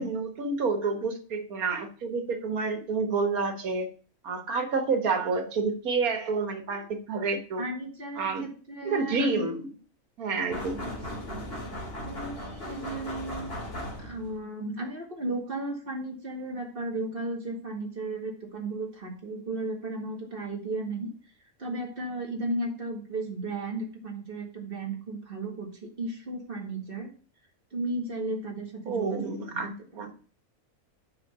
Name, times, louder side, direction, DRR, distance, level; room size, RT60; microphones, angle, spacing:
voice 1, 0.0-3.9 4.2-7.6 8.2-8.5 8.9-9.7 10.2-10.8 28.9-30.1, right 4 dB, 90° right, 7 dB, 1.8 m, -29 dB
voice 2, 7.6-9.5 10.8-11.3 12.0-13.5 14.0-21.1 21.6-27.1 27.7-29.7 29.9-30.0, right 2 dB, 40° right, 1 dB, 2.1 m, -35 dB
sound 1, 10.5-14.4, equal, 45° left, 2.8 m, -37 dB
5.9 x 5.8 x 6.7 m, 0.39 s
omnidirectional pair, 1.5 m